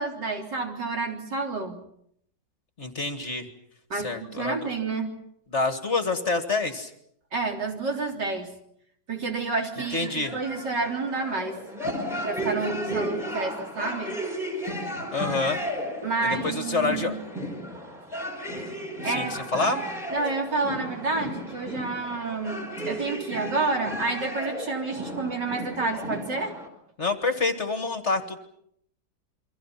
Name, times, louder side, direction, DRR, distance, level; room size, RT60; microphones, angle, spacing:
voice 1, 0.0-1.8 3.9-5.1 7.3-8.5 9.1-11.6 12.2-14.2 16.0-17.1 19.0-19.4 20.1-26.6, right 3 dB, 65° right, 1 dB, 4.2 m, -29 dB
voice 2, 2.8-3.5 3.9-4.7 5.5-6.9 9.9-10.3 15.1-15.6 16.2-17.1 19.0-19.8 27.0-28.4, left 3 dB, 40° left, 7 dB, 2.1 m, -27 dB
sound 1, 9.8-26.7, equal, ahead, 5.0 m, -34 dB
29.0 x 24.5 x 5.9 m, 0.70 s
omnidirectional pair, 2.0 m